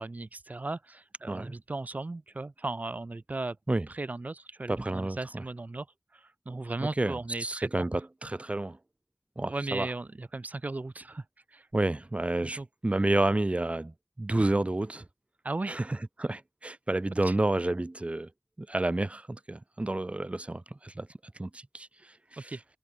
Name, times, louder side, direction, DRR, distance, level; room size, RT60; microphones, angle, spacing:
voice 1, 0.0-3.6 3.9-5.9 6.1-8.0 9.4-11.7 12.4-12.7 15.4-15.8 17.2-17.4 22.4-22.6, right 2 dB, 85° right, 1.6 m, -37 dB
voice 2, 4.7-5.2 7.0-7.1 7.4-8.8 9.4-9.9 11.7-13.9 14.2-15.0 15.7-15.8 16.2-18.3 18.7-21.1 21.4-21.9, right 2 dB, 50° right, 1.0 m, -29 dB
wide cardioid pair, 40°, 3 cm